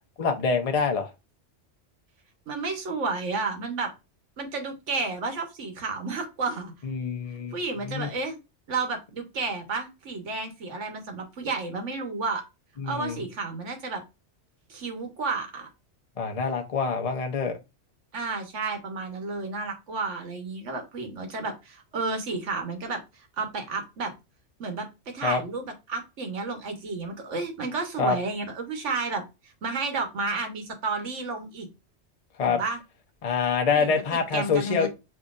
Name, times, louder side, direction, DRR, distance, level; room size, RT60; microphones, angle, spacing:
voice 1, 0.2-1.1 6.8-7.5 7.9-8.1 12.8-13.2 16.2-17.6 25.2-25.4 28.0-28.2 32.4-32.6 33.2-34.9, left 5 dB, 40° left, 4 dB, 0.6 m, -25 dB
voice 2, 2.5-3.9 4.4-6.7 7.5-8.4 8.7-12.4 12.8-14.0 14.7-15.7 18.1-23.0 23.4-24.1 24.6-24.9 25.1-29.2 29.6-31.7 32.4-32.8 33.7-34.9, right 3 dB, 80° right, 5 dB, 1.4 m, -31 dB
6.8 x 2.7 x 2.4 m, 0.25 s
omnidirectional pair, 1.2 m